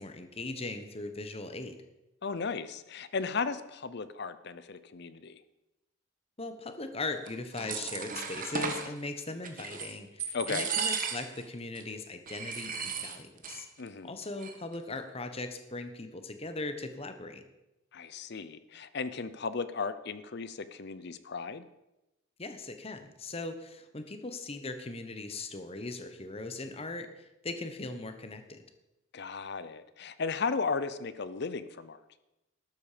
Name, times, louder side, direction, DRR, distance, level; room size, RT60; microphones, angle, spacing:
voice 1, 0.0-1.8 6.4-13.7 14.0-17.4 22.4-28.6, left 2 dB, 30° left, 8 dB, 1.2 m, -39 dB
voice 2, 2.2-5.4 10.3-10.7 13.8-14.1 17.9-21.7 29.1-32.0, left 4 dB, 55° left, 14 dB, 0.7 m, -35 dB
sound 1, 7.3-8.9 9.4-9.9 10.2-11.4 11.7-11.8 12.3-13.6 13.9-14.0 14.2-14.7, right 6 dB, 45° right, 1.5 m, -35 dB
12.5 x 12.0 x 5.1 m, 0.94 s
head